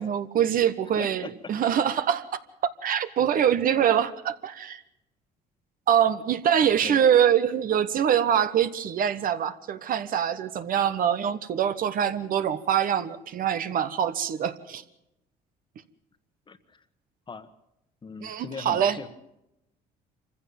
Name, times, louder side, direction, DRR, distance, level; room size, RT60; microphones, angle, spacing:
voice 1, 0.0-2.3 2.8-4.8 5.9-14.8 18.2-19.0, right 9 dB, 55° right, 12 dB, 1.3 m, -24 dB
voice 2, 0.9-1.3 6.6-7.0 16.5-16.8 17.3-17.5 18.0-19.1, left 5 dB, 30° left, 11 dB, 1.5 m, -40 dB
25.5 x 15.5 x 7.1 m, 0.86 s
cardioid pair, 110°, 17 cm